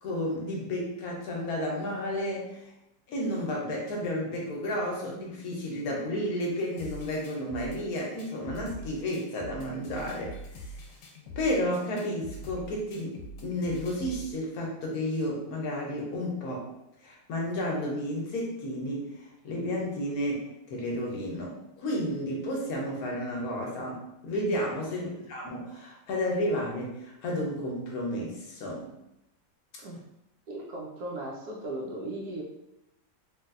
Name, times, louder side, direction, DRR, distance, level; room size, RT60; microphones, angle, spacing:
voice 1, 0.0-2.7 3.1-10.6 11.4-16.7 17.0-19.1 19.4-28.9, left 1 dB, 70° left, -2 dB, 1.1 m, -32 dB
sound 1, 6.8-14.3, equal, 85° left, 1.3 m, -44 dB
voice 2, 24.9-25.3 29.8-30.1 30.5-32.4, right 1 dB, 70° right, -1 dB, 1.1 m, -37 dB
3.3 x 2.6 x 2.4 m, 0.85 s
omnidirectional pair, 1.8 m